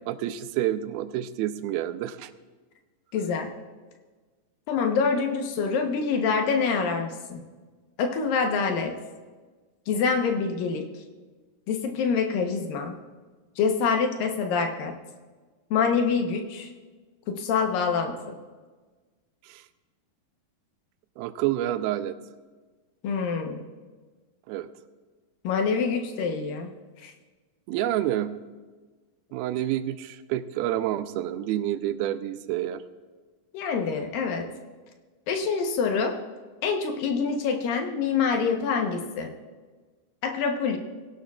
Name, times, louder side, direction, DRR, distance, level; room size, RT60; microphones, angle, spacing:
voice 1, 0.1-2.3 19.4-19.6 21.2-22.2 24.5-24.7 27.7-28.3 29.3-32.8, right 12 dB, 90° right, 11 dB, 2.5 m, -28 dB
voice 2, 3.1-3.5 4.7-7.4 8.0-8.9 9.9-10.9 11.7-12.9 13.6-14.9 15.7-16.7 17.3-18.4 23.0-23.6 25.4-26.7 27.0-27.1 33.5-34.5 35.3-36.2 36.6-39.3 40.2-40.8, left 5 dB, 75° left, 4 dB, 2.7 m, -26 dB
20.0 x 17.0 x 2.4 m, 1.4 s
omnidirectional pair, 4.2 m